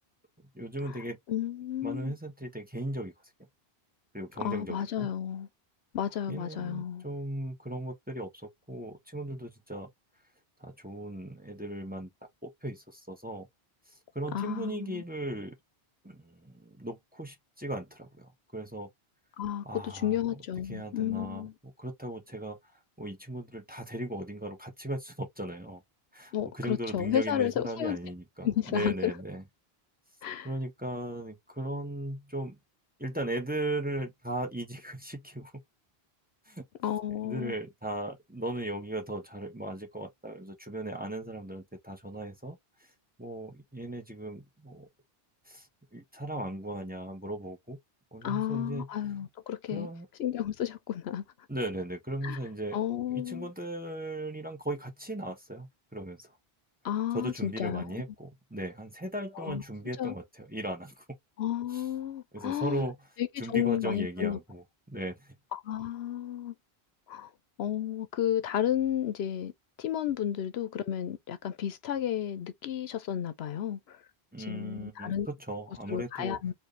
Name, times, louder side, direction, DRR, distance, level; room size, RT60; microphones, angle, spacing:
voice 1, 0.5-1.2 1.8-3.1 4.1-5.1 6.3-9.9 10.6-12.1 12.4-13.5 13.9-15.6 16.0-18.9 19.6-22.6 23.0-25.8 26.1-29.5 30.4-32.6 33.0-35.5 36.5-36.6 37.2-42.6 43.2-44.9 45.5-45.7 45.9-47.8 48.1-49.1 49.7-50.1 51.5-52.8 53.1-56.3 57.1-61.0 61.7-61.9 62.3-63.1 63.4-64.6 64.9-65.2 74.3-76.4, right 1 dB, 10° right, 1.1 m, -37 dB
voice 2, 1.3-2.1 4.4-5.5 5.9-7.0 14.3-15.0 19.4-21.5 26.3-28.0 28.4-29.1 30.2-30.5 36.8-37.5 48.2-49.9 50.2-51.2 52.2-52.4 52.7-53.5 56.8-57.8 59.3-59.6 60.0-60.1 61.4-62.9 63.2-64.4 65.5-66.5 67.1-67.3 67.6-69.5 69.8-74.0 74.5-75.3 75.9-76.5, left 10 dB, 80° left, 0.9 m, -32 dB
4.6 x 2.7 x 3.1 m
omnidirectional pair, 1.1 m